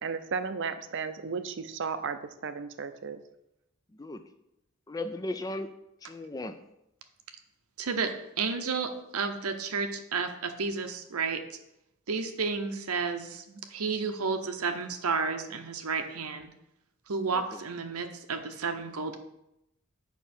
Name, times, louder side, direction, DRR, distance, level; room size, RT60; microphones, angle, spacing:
voice 1, 0.0-3.2, right 5 dB, 55° right, 10 dB, 0.5 m, -34 dB
voice 2, 3.9-4.2 4.9-5.7 6.0-6.6 17.3-17.6, left 2 dB, 15° left, 10 dB, 0.3 m, -36 dB
voice 3, 7.8-11.4 12.1-16.5 17.1-19.2, right 4 dB, 90° right, 6 dB, 0.8 m, -32 dB
7.3 x 5.6 x 4.3 m, 0.85 s
head